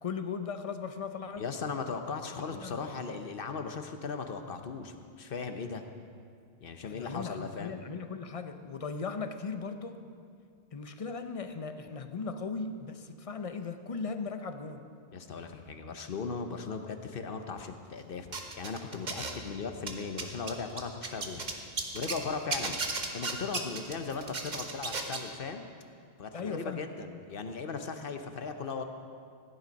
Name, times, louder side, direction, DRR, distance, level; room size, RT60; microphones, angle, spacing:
voice 1, 0.0-1.4 2.5-2.8 6.8-10.0 10.7-14.8 22.7-22.8 26.3-26.9, left 5 dB, 40° left, 8 dB, 0.7 m, -38 dB
voice 2, 1.4-5.8 6.6-7.8 15.1-18.3 18.6-21.5 21.9-22.8 23.1-25.7 26.2-28.8, left 5 dB, 60° left, 7 dB, 1.0 m, -38 dB
sound 1, 18.3-19.5 19.8-22.2 22.5-25.3, right 3 dB, 45° right, 1.2 m, -35 dB
15.5 x 10.0 x 5.3 m, 2.3 s
omnidirectional pair, 1.1 m